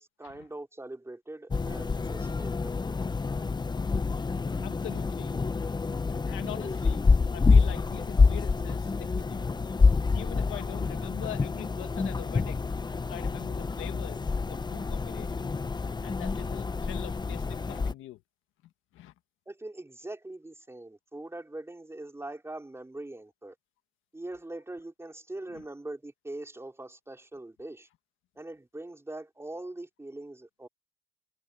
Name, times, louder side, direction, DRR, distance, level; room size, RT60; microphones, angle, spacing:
voice 1, 0.0-3.0 19.5-23.5 24.1-27.9 28.3-30.7, right 2 dB, 15° right, 4.7 m, -42 dB
sound 1, 1.5-17.9, left 4 dB, 20° left, 0.7 m, -27 dB
voice 2, 4.5-5.7 6.1-7.0 7.3-9.8 10.1-12.7 13.1-15.6 16.0-18.2 18.9-19.1 25.5-25.7, left 14 dB, 90° left, 1.5 m, -43 dB
cardioid pair, 90°, 20 cm